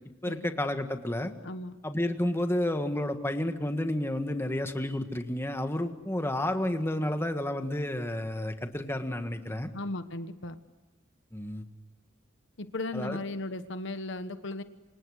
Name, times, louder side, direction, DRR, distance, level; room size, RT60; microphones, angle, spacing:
voice 1, 0.2-1.3 1.8-9.7 11.3-11.7 12.9-13.2, left 1 dB, 10° left, 7 dB, 1.6 m, -31 dB
voice 2, 1.4-1.8 9.7-10.6 12.6-14.6, left 2 dB, 60° left, 10 dB, 1.2 m, -36 dB
28.5 x 26.0 x 6.5 m, 1.2 s
head